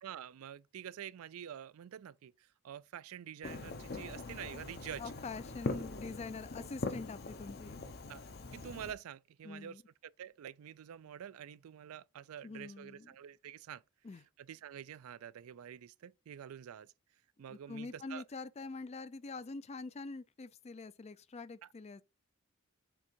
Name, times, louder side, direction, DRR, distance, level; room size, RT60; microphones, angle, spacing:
voice 1, 0.0-2.3 2.6-5.0 8.1-8.2 8.5-13.8 14.4-16.9 17.4-18.2, right 9 dB, 80° right, 0.4 m, -47 dB
Fireworks, 3.4-8.9, left 3 dB, 50° left, 0.8 m, -42 dB
voice 2, 5.0-7.8 9.4-9.8 12.4-13.1 14.0-14.2 17.5-22.0, left 3 dB, 30° left, 0.4 m, -45 dB
6.9 x 3.6 x 4.4 m
head